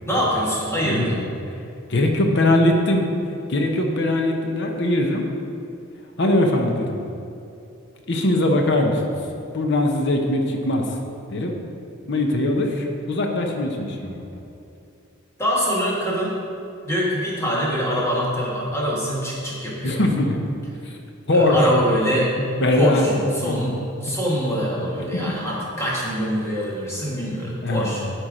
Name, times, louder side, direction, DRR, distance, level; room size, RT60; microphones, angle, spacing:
voice 1, 0.1-1.2 15.4-16.4 16.8-20.0 21.3-22.4 22.8-28.0, equal, 15° left, -5 dB, 1.6 m, -24 dB
voice 2, 0.8-1.3 1.9-3.1 3.5-5.3 6.2-7.0 8.1-9.1 9.5-11.0 11.3-11.5 12.1-14.3 19.8-20.4 21.3-21.6 22.6-23.8 25.1-25.2 27.6-28.1, left 1 dB, 55° left, 2 dB, 0.8 m, -21 dB
11.0 x 4.6 x 5.0 m, 2.6 s
head